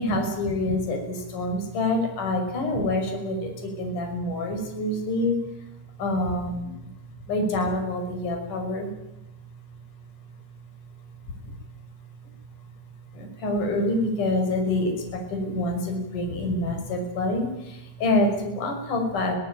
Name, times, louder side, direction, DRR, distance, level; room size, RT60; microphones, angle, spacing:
voice 1, 0.0-5.7 6.0-6.9 7.2-8.9 11.4-11.6 13.1-19.3, left 1 dB, 40° left, 3 dB, 7.0 m, -27 dB
25.0 x 17.5 x 9.0 m, 0.90 s
omnidirectional pair, 5.6 m